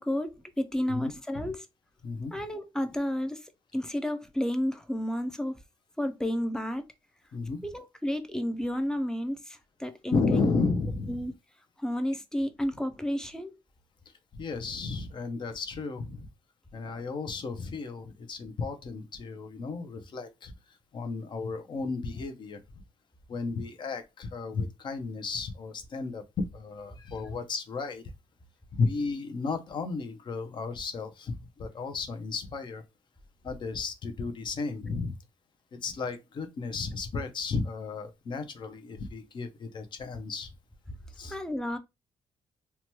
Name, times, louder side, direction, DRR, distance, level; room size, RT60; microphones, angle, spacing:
voice 1, 0.0-1.7 2.3-5.6 6.0-6.9 7.6-10.4 11.1-11.3 11.8-13.6 41.3-41.8, equal, 5° left, 0.4 m, -31 dB
voice 2, 0.8-1.5 2.0-2.3 7.3-7.6 10.1-11.2 14.3-16.3 16.7-22.8 23.3-28.0 28.7-32.8 33.4-35.1 35.8-40.5 41.1-41.4, left 4 dB, 50° left, 0.6 m, -33 dB
2.9 x 2.2 x 2.9 m
cardioid pair, 105°, 10 cm